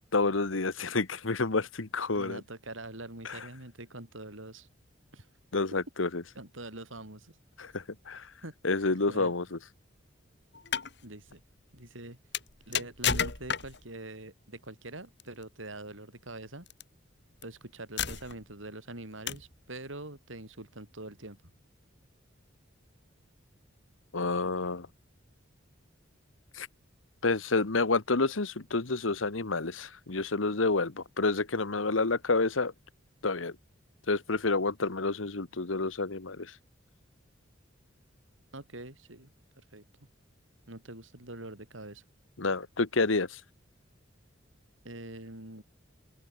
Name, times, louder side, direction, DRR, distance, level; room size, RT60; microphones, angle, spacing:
voice 1, 0.0-2.4 3.2-3.4 5.5-6.2 7.6-8.3 8.6-9.6 24.1-24.9 26.5-26.7 27.2-32.7 33.2-33.5 34.1-36.5 42.4-43.4, left 3 dB, 90° left, 1.4 m, -29 dB
voice 2, 2.1-4.7 5.1-5.3 6.4-7.3 8.4-8.6 8.9-9.4 11.0-11.4 11.7-12.2 12.7-16.7 17.4-21.5 38.5-39.3 39.6-39.8 40.7-42.1 44.8-45.6, right 2 dB, 85° right, 6.8 m, -44 dB
sound 1, 10.5-10.9 12.3-13.9 15.2-15.4 16.7-16.8 17.4-17.5 18.0-18.5 19.3-19.6, left 7 dB, 60° left, 3.3 m, -32 dB
open air
head